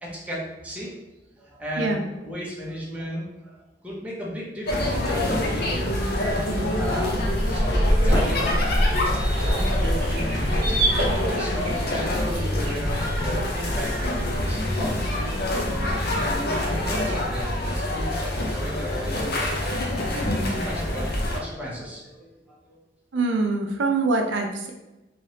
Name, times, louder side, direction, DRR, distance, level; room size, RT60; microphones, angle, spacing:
voice 1, 0.0-0.9 1.4-6.1 6.8-8.4 9.3-19.5 20.1-22.8, equal, 10° right, -6 dB, 0.9 m, -35 dB
sound 1, 4.7-21.4, left 1 dB, 60° left, 0.7 m, -25 dB
sound 2, 7.3-12.8, right 2 dB, 50° right, 1.2 m, -32 dB
voice 2, 23.1-24.7, right 3 dB, 80° right, 3 dB, 0.5 m, -24 dB
3.3 x 3.1 x 2.8 m, 0.99 s
head